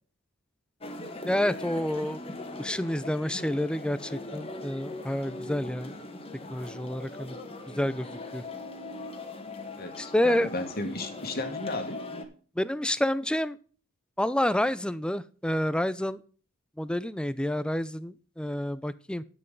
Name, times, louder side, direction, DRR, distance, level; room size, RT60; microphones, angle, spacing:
sound 1, 0.8-12.2, left 2 dB, 30° left, 1.4 m, -40 dB
voice 1, 1.3-2.2 2.6-5.9 6.5-7.4 7.8-8.1 8.3-8.4 10.0-10.5 12.6-13.6 14.2-16.2 16.8-19.2, left 1 dB, 5° left, 16 dB, 0.5 m, -28 dB
voice 2, 9.8-12.0, left 2 dB, 50° left, 6 dB, 1.7 m, -34 dB
11.0 x 8.2 x 3.8 m, 0.41 s
head